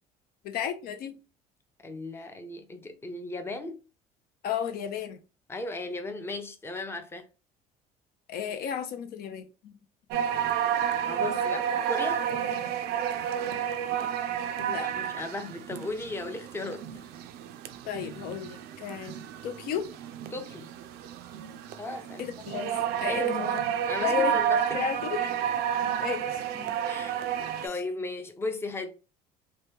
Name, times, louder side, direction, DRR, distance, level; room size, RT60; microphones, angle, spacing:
voice 1, 0.4-1.2 4.4-5.2 8.3-9.7 14.6-15.1 17.8-19.2 19.4-19.9 22.2-23.6 24.0-24.4 24.7-25.3 26.0-26.7, left 8 dB, 65° left, 0.5 m, -33 dB
voice 2, 1.8-3.8 5.5-7.3 11.0-12.3 14.8-16.8 20.3-20.7 21.8-22.5 23.1-23.3 23.9-24.9 26.8-27.3 27.6-29.0, left 2 dB, 15° left, 0.6 m, -36 dB
sound 1, 10.1-27.7, right 9 dB, 75° right, 0.4 m, -31 dB
2.9 x 2.2 x 3.3 m
supercardioid pair, 95°, 17 cm